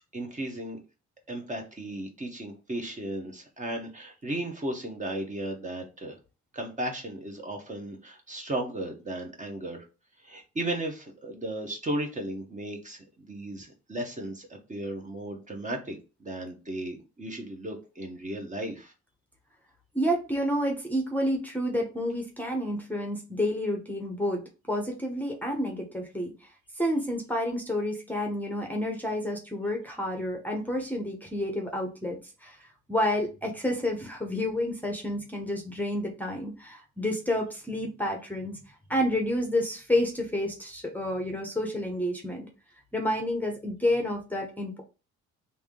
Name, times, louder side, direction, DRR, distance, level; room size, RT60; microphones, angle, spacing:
voice 1, 0.1-0.8 1.3-6.2 6.5-9.8 10.2-18.9, right 1 dB, 25° right, 2 dB, 1.0 m, -35 dB
voice 2, 19.9-26.3 26.8-32.6 32.9-38.6 38.9-42.5 42.9-44.8, left 1 dB, 5° left, 1 dB, 0.8 m, -29 dB
3.4 x 2.8 x 3.6 m, 0.32 s
cardioid pair, 90°, 30 cm